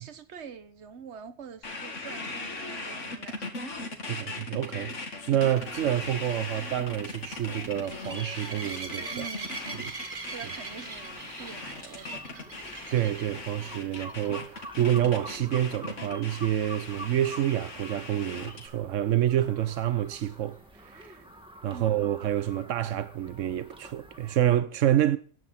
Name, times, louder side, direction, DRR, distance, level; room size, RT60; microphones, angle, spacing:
voice 1, 0.0-3.9 9.1-9.8 10.3-12.5 21.7-22.1, right 6 dB, 65° right, 1.4 m, -45 dB
sound 1, 1.6-18.7, left 3 dB, 75° left, 2.5 m, -39 dB
voice 2, 4.1-9.2 9.8-9.9 12.9-21.2 21.6-25.2, right 11 dB, 90° right, 1.1 m, -28 dB
sound 2, 5.5-24.6, equal, 5° right, 2.1 m, -48 dB
sound 3, 5.5-13.4 14.0-14.3 14.6-14.7 15.1-15.2 18.7-18.8, right 3 dB, 45° right, 1.6 m, -41 dB
14.0 x 10.5 x 4.3 m
omnidirectional pair, 1.3 m